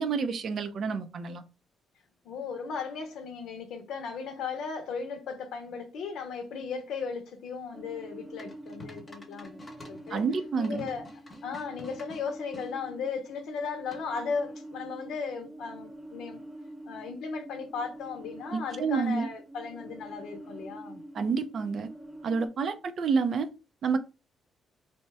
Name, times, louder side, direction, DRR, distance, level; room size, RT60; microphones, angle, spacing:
voice 1, 0.0-1.4 10.1-10.9 18.5-19.3 21.1-21.9 22.2-23.5 23.8-24.0, right 5 dB, 55° right, 0.4 m, -29 dB
voice 2, 2.2-10.2 10.6-11.1 11.4-16.4 16.9-21.0, left 5 dB, 80° left, 0.6 m, -36 dB
sound 1, 7.7-22.5, right 1 dB, 10° right, 0.7 m, -46 dB
sound 2, 8.4-12.7 13.9-14.3, left 1 dB, 30° left, 0.8 m, -49 dB
2.7 x 2.2 x 3.2 m
cardioid pair, 90°, 0 cm